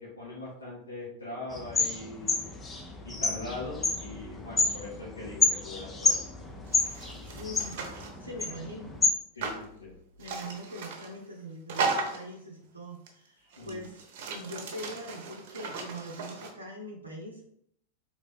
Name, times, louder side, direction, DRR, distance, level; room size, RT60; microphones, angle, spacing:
voice 1, 0.0-2.7 3.0-6.7 7.3-7.6 8.5-8.7 9.3-9.9 13.4-13.9, left 2 dB, 75° left, -6 dB, 1.4 m, -42 dB
sound 1, 1.5-9.1, left 4 dB, 15° left, 0.6 m, -30 dB
sound 2, 6.7-8.2 9.4-9.6 10.2-11.1 11.7-12.3 13.1-13.2 13.5-16.5, right 4 dB, 50° right, 0.9 m, -36 dB
voice 2, 7.4-7.9 8.2-8.9 10.2-17.5, equal, 80° right, -1 dB, 0.7 m, -42 dB
3.9 x 3.2 x 3.6 m, 0.69 s
figure-of-eight pair, 90°, 0 cm